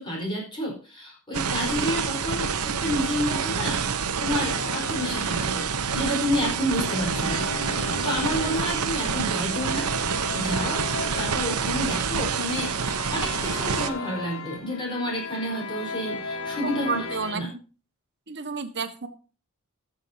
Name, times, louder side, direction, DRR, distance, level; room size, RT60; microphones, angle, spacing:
voice 1, 0.0-2.5 2.8-5.7 5.9-9.9 10.3-17.1 17.3-17.5, equal, 20° left, -2 dB, 4.5 m, -30 dB
sound 1, 1.3-13.9, right 6 dB, 85° right, 1.0 m, -27 dB
sound 2, 4.2-17.3, left 3 dB, 70° left, 2.0 m, -36 dB
voice 2, 16.6-17.6 18.3-19.1, right 5 dB, 50° right, 7 dB, 1.5 m, -31 dB
21.5 x 7.2 x 2.8 m, 0.35 s
head